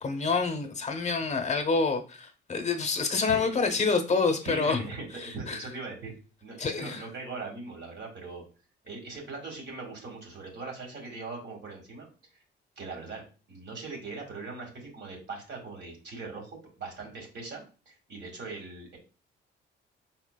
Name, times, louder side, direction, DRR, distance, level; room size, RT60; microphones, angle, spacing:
voice 1, 0.0-4.8 5.1-5.6 6.6-7.1, left 4 dB, 35° left, 0.8 m, -27 dB
voice 2, 4.4-6.1 6.4-8.4 8.8-12.1 12.3-12.4 12.8-13.2 13.5-19.0, right 3 dB, 60° right, 1.9 m, -40 dB
4.4 x 4.2 x 2.2 m
cardioid pair, 90°, 20 cm